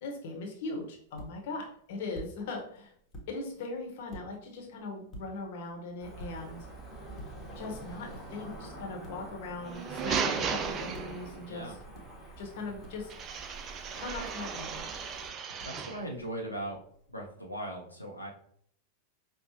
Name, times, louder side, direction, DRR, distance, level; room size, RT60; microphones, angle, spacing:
voice 1, 0.0-2.9 3.3-6.7 7.5-11.8 12.4-13.1 13.9-15.0, left 3 dB, 50° left, 1 dB, 0.9 m, -40 dB
sound 1, 0.5-17.3, right 1 dB, 25° left, 1.0 m, -53 dB
Cricket / Motor vehicle (road), 6.0-15.3, right 2 dB, 5° right, 1.1 m, -47 dB
sound 2, 9.6-11.5 13.1-16.1, right 6 dB, 30° right, 0.3 m, -35 dB
voice 2, 11.5-11.8 15.3-16.8 17.1-18.3, right 1 dB, 90° left, -3 dB, 0.5 m, -39 dB
5.3 x 2.0 x 2.9 m, 0.65 s
figure-of-eight pair, 90°, 0 cm